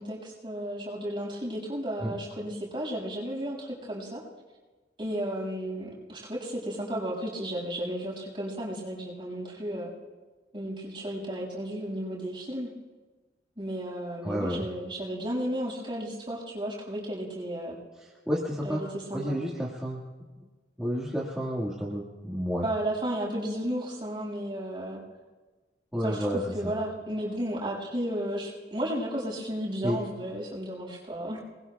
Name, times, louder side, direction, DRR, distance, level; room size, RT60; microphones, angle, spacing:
voice 1, 0.0-4.2 5.0-9.9 10.5-12.7 13.6-17.8 18.6-19.4 22.6-25.0 26.0-26.3 26.5-31.4, right 1 dB, 30° right, -7 dB, 6.1 m, -33 dB
voice 2, 14.2-14.7 18.0-18.8 19.1-20.0 20.8-22.7 25.9-26.7 29.8-30.0, equal, 5° right, -6 dB, 1.8 m, -30 dB
28.0 x 21.0 x 2.3 m, 1.3 s
head